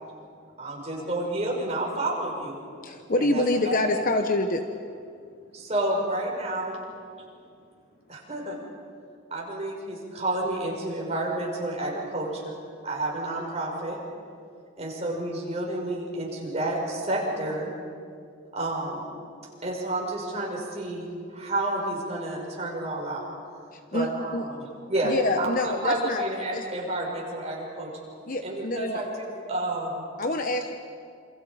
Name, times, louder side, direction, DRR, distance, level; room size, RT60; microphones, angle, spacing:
voice 1, 0.6-2.6 3.2-3.9 5.5-6.8 8.1-8.6 9.3-12.6 12.8-14.0 14.8-17.7 18.5-19.1 19.6-23.2 23.9-27.9 28.4-30.0, right 1 dB, 35° right, -2 dB, 5.9 m, -30 dB
voice 2, 2.8-4.6 23.9-24.5 25.0-26.2 26.5-26.6 28.3-29.0 30.2-30.7, left 2 dB, 45° left, 5 dB, 1.1 m, -26 dB
voice 3, 5.1-5.7 7.1-8.2, left 1 dB, 80° left, 0 dB, 3.9 m, -62 dB
28.0 x 27.5 x 5.1 m, 2.3 s
head